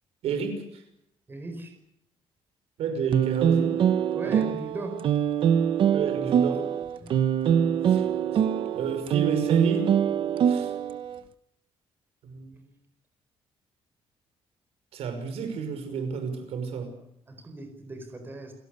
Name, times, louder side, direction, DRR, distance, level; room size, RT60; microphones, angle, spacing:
voice 1, 0.2-0.8 2.8-3.8 4.2-4.3 5.9-6.7 7.9-8.0 8.7-9.9 10.5-10.7 12.2-12.6 14.9-16.9, right 6 dB, 80° right, 5.7 m, -31 dB
voice 2, 1.3-1.7 4.1-5.0 7.0-7.1 17.3-18.5, right 2 dB, 20° right, 4.4 m, -37 dB
sound 1, 3.1-11.2, right 8 dB, 55° right, 1.1 m, -24 dB
30.0 x 17.5 x 6.8 m
cardioid pair, 170°, 10 cm